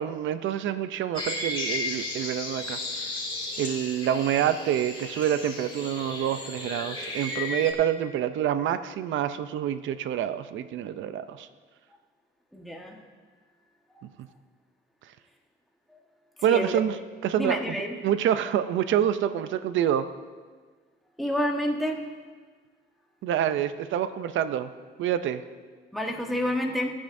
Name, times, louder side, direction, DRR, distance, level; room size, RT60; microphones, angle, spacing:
voice 1, 0.0-3.1 3.6-11.5 16.4-17.0 17.2-17.8 18.0-20.1 23.2-24.7 25.0-25.4, right 10 dB, 75° right, 11 dB, 0.6 m, -27 dB
sound 1, 1.1-7.7, left 2 dB, 25° left, 2.3 m, -34 dB
voice 2, 12.6-12.9 16.5-16.8 17.4-17.9 21.2-22.0 25.9-26.9, left 1 dB, ahead, 0 dB, 1.3 m, -28 dB
21.5 x 8.6 x 2.7 m, 1.5 s
cardioid pair, 90°, 20 cm